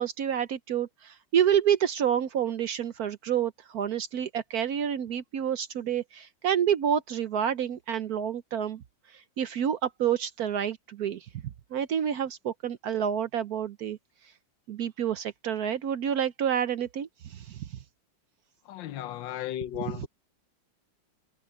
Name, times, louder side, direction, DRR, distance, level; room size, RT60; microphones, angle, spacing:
voice 1, 0.0-8.8 9.4-11.3 11.7-14.0 14.7-17.6 20.0-20.1, right 9 dB, 65° right, 1.1 m, -28 dB
voice 2, 18.7-20.1, left 12 dB, 85° left, 1.5 m, -35 dB
omnidirectional pair, 2.0 m